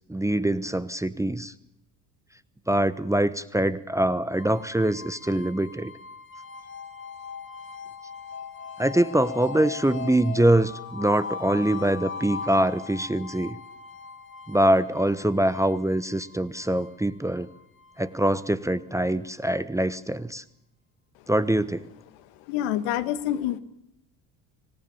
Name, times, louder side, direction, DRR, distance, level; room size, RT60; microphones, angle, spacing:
voice 1, 0.1-1.5 2.7-5.9 8.8-13.6 14.5-17.5 18.0-20.4 21.3-21.8, right 1 dB, 5° right, 14 dB, 1.1 m, -24 dB
sound 1, 4.4-19.3, left 5 dB, 25° left, 2.1 m, -40 dB
voice 2, 22.5-23.6, left 12 dB, 65° left, 11 dB, 1.9 m, -27 dB
26.5 x 18.0 x 7.1 m, 0.79 s
hypercardioid pair, 65°, 48 cm